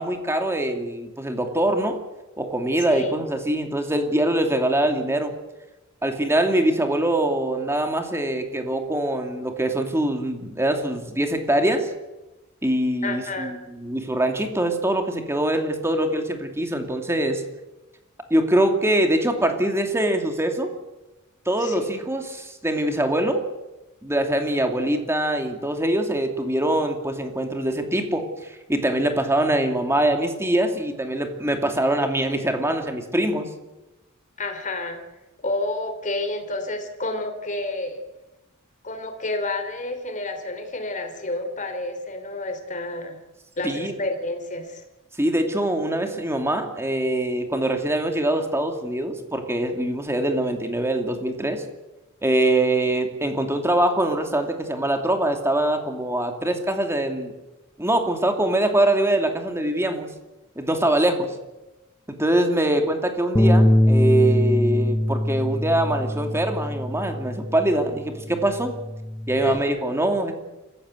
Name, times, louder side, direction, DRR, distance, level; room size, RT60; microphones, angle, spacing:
voice 1, 0.0-2.0 2.4-5.3 6.0-11.9 12.6-17.4 18.3-20.7 21.5-23.4 24.0-33.5 43.6-43.9 45.2-51.6 52.2-57.3 57.8-60.1 60.6-61.3 62.1-68.7 69.3-70.3, right 1 dB, 15° right, 5 dB, 2.6 m, -23 dB
voice 2, 13.0-13.5 21.6-21.8 34.4-35.0 35.4-38.0 38.8-43.2 43.6-44.8 69.4-69.6, left 2 dB, 40° left, 6 dB, 3.2 m, -29 dB
Bass guitar, 63.4-67.8 68.2-69.6, left 1 dB, 10° left, 0.7 m, -22 dB
27.5 x 15.5 x 7.9 m, 1.0 s
head